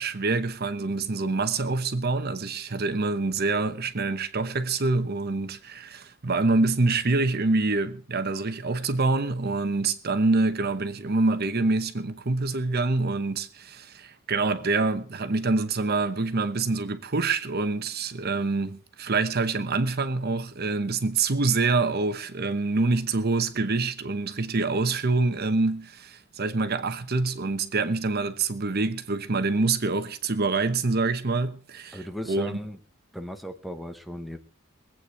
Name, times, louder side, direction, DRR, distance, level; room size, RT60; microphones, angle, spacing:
voice 1, 0.0-32.0 32.2-32.6, right 3 dB, 50° right, 1.0 m, -26 dB
voice 2, 31.9-32.8 33.1-34.4, equal, ahead, 1.0 m, -36 dB
22.0 x 8.7 x 4.7 m
head